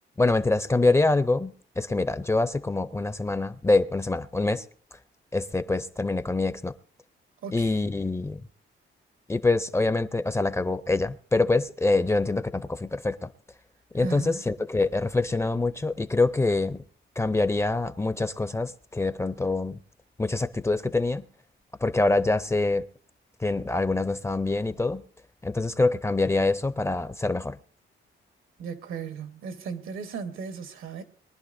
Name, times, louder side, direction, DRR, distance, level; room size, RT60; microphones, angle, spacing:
voice 1, 0.2-4.6 5.3-6.7 7.5-8.4 9.3-13.3 13.9-16.8 17.2-19.8 20.2-21.2 21.8-22.9 23.4-25.0 25.4-27.6, left 2 dB, 15° left, 0.4 m, -25 dB
voice 2, 14.0-14.4 28.6-31.0, right 5 dB, 85° right, 1.3 m, -36 dB
22.5 x 11.0 x 2.6 m
cardioid pair, 120°, 20 cm